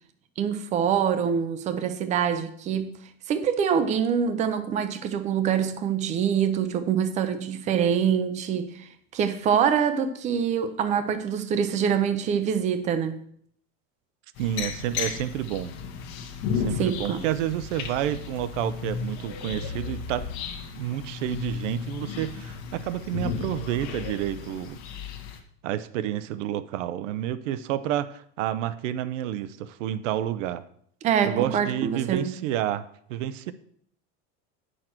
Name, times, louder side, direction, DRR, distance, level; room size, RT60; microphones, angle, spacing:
voice 1, 0.4-3.0 3.3-13.2 16.7-17.2 31.0-32.3, right 8 dB, 20° right, 10 dB, 0.5 m, -25 dB
sound 1, 14.4-25.4, left 6 dB, 45° left, 1.1 m, -34 dB
voice 2, 14.4-15.7 16.5-20.3 20.8-24.8 25.6-30.6 31.2-32.8 33.1-33.5, right 12 dB, 85° right, 14 dB, 0.7 m, -29 dB
9.1 x 6.5 x 4.4 m, 0.64 s
supercardioid pair, 170°, 36 cm